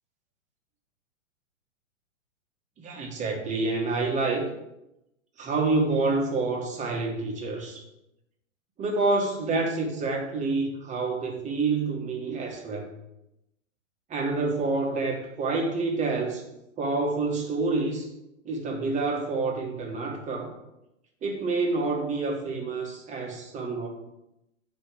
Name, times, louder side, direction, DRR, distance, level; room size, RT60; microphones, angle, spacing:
voice 1, 2.8-4.5 5.4-7.8 8.8-12.9 14.1-16.4 16.8-18.1 18.4-20.5 21.2-23.9, right 3 dB, 20° right, 1 dB, 1.6 m, -28 dB
10.0 x 3.4 x 4.9 m, 0.87 s
hypercardioid pair, 120°, 40 cm